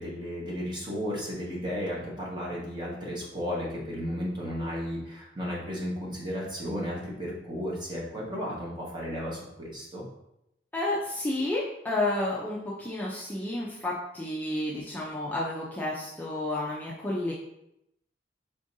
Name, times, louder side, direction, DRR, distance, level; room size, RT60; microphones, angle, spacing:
voice 1, 0.0-10.1, equal, 25° right, -5 dB, 1.2 m, -34 dB
voice 2, 10.7-17.3, left 1 dB, 10° left, -5 dB, 0.5 m, -31 dB
5.0 x 3.6 x 2.7 m, 0.81 s
head